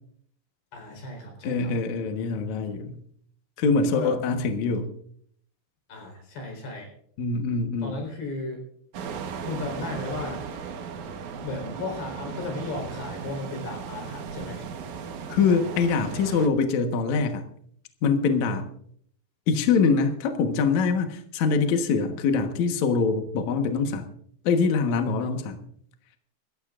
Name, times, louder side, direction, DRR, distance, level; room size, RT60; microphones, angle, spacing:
voice 1, 0.7-1.7 3.9-4.1 5.9-6.9 7.8-8.6 9.4-10.4 11.4-14.7, left 3 dB, 55° left, 2 dB, 6.1 m, -35 dB
voice 2, 1.4-3.0 3.6-4.9 7.2-8.0 15.3-17.4 18.0-18.7 19.5-24.1 24.4-25.6, left 5 dB, 70° left, 5 dB, 1.7 m, -24 dB
sound 1, 8.9-16.5, right 6 dB, 75° right, 1.7 m, -36 dB
26.5 x 14.0 x 2.5 m, 0.63 s
omnidirectional pair, 5.4 m